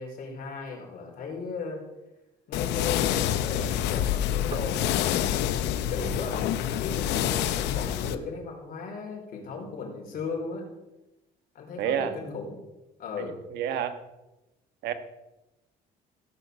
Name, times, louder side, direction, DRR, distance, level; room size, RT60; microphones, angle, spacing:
voice 1, 0.0-1.9 2.5-5.4 5.9-6.4 6.8-10.7 11.5-12.6 13.0-13.4, left 4 dB, 60° left, 0 dB, 4.7 m, -36 dB
sound 1, 2.5-8.2, left 11 dB, 85° left, 0.9 m, -27 dB
sound 2, 2.8-7.9, right 3 dB, 30° right, 2.1 m, -49 dB
voice 2, 11.8-12.1 13.2-14.0 14.8-14.9, right 9 dB, 85° right, 9 dB, 1.4 m, -29 dB
16.5 x 6.9 x 7.0 m, 0.99 s
cardioid pair, 110°, 17 cm